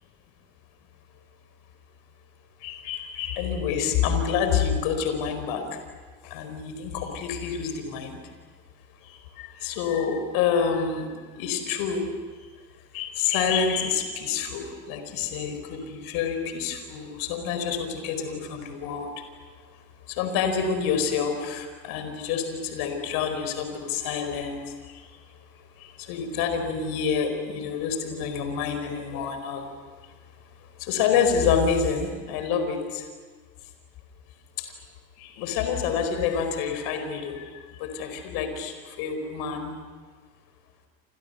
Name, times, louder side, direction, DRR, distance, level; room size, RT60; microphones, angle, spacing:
voice 1, 2.6-5.6 6.3-8.2 9.4-11.1 11.4-12.0 12.9-19.1 20.2-24.6 26.1-29.6 30.9-33.0 35.2-37.4 37.8-39.7, left 6 dB, 65° left, 7 dB, 4.8 m, -27 dB
29.0 x 28.5 x 6.8 m, 1.5 s
hypercardioid pair, 65°, 39 cm